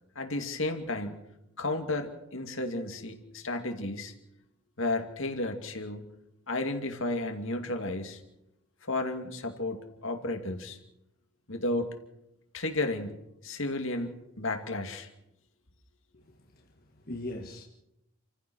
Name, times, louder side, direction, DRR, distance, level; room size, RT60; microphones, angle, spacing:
voice 1, 0.2-1.2 1.6-4.1 4.8-6.1 6.5-8.2 8.8-10.8 11.5-11.9 12.5-15.1, left 2 dB, 65° left, 2.5 m, -33 dB
voice 2, 16.1-17.6, left 1 dB, 45° left, 1.7 m, -41 dB
28.5 x 15.0 x 6.4 m
head